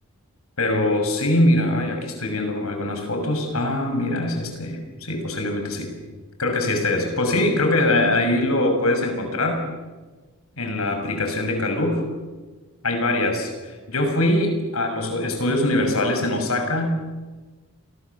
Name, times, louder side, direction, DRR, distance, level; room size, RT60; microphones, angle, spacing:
voice 1, 0.6-5.9 6.4-9.6 10.6-12.0 12.8-17.1, left 1 dB, 80° left, 4 dB, 6.2 m, -23 dB
27.5 x 21.0 x 7.2 m, 1.3 s
head